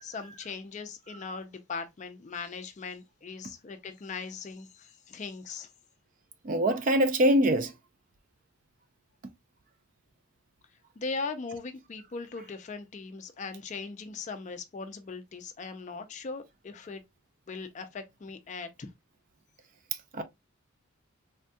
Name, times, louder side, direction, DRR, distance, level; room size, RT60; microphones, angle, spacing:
voice 1, 0.0-5.7 11.0-17.0 17.5-18.9, left 4 dB, 35° left, 0.3 m, -39 dB
voice 2, 6.4-7.7 20.1-20.2, equal, 40° right, 0.4 m, -23 dB
3.4 x 2.2 x 2.6 m
head